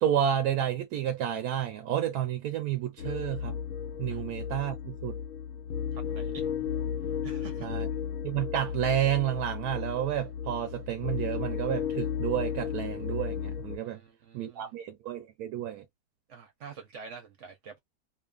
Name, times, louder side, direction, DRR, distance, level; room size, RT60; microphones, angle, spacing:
voice 1, 0.0-3.6 4.0-5.2 7.6-7.9 8.2-14.0 14.3-15.8, right 10 dB, 80° right, 1.1 m, -30 dB
sound 1, 3.0-13.8, left 7 dB, 70° left, 0.9 m, -34 dB
voice 2, 5.9-6.5 7.2-7.8 13.8-14.7 16.3-17.8, right 6 dB, 60° right, 0.9 m, -47 dB
2.7 x 2.5 x 2.3 m
omnidirectional pair, 1.6 m